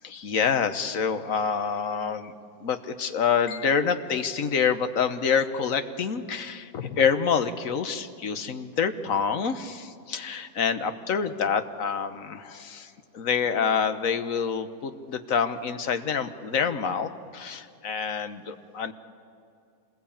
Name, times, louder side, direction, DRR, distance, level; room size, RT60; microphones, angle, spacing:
voice 1, 0.0-2.3 2.6-18.9, left 6 dB, 70° left, 10 dB, 1.5 m, -27 dB
26.5 x 20.5 x 8.7 m, 2.5 s
omnidirectional pair, 1.5 m